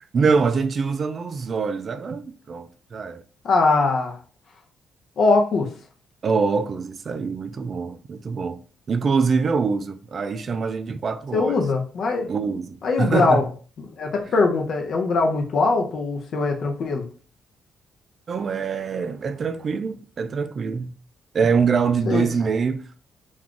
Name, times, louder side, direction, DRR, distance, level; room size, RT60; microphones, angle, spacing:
voice 1, 0.1-3.2 6.2-8.6 8.9-11.6 12.3-13.5 18.3-20.9 21.3-23.0, right 5 dB, 50° right, 0.3 m, -24 dB
voice 2, 3.4-4.2 5.2-5.7 11.3-12.3 12.8-13.4 13.8-17.1 22.1-22.2, left 3 dB, 60° left, 0.6 m, -21 dB
2.4 x 2.3 x 3.6 m
hypercardioid pair, 55°, 0 cm